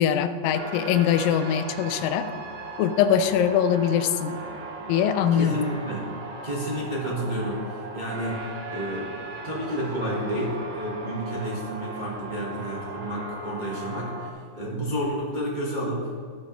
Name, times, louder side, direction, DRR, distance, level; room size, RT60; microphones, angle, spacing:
voice 1, 0.0-2.2 2.8-4.4 4.9-5.5, left 9 dB, 90° left, 10 dB, 2.4 m, -22 dB
sound 1, 0.5-14.3, right 2 dB, 80° right, 2.5 m, -38 dB
voice 2, 5.3-6.1 6.4-16.1, equal, 55° right, -6 dB, 0.5 m, -30 dB
17.0 x 6.5 x 3.2 m, 2.1 s
omnidirectional pair, 3.9 m